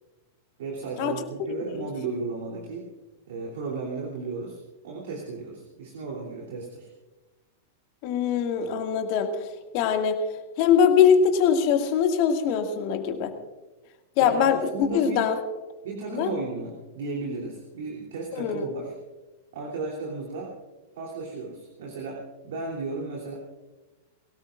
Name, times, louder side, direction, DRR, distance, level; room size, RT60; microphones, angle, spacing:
voice 1, 0.6-2.9 3.3-6.9 14.2-15.3 15.8-18.9 19.5-20.5 20.9-23.4, right 3 dB, 65° right, -2 dB, 3.2 m, -34 dB
voice 2, 8.0-9.3 9.7-10.2 10.6-13.3 14.2-15.4 16.1-16.3 18.3-18.6, left 7 dB, 50° left, 4 dB, 2.1 m, -22 dB
22.5 x 18.5 x 2.5 m, 1.1 s
figure-of-eight pair, 95°, 0 cm